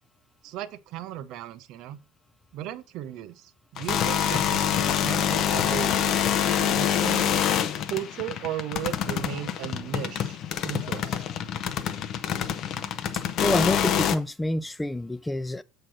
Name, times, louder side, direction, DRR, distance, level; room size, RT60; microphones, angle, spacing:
voice 1, 0.4-2.0 2.5-7.3 7.9-10.4 10.6-11.2, right 12 dB, 55° right, 0.8 m, -36 dB
sound 1, 3.8-14.2, left 9 dB, 45° left, 0.9 m, -26 dB
voice 2, 13.1-15.6, left 1 dB, 10° left, 0.4 m, -28 dB
7.6 x 4.8 x 6.1 m
figure-of-eight pair, 70°, 0 cm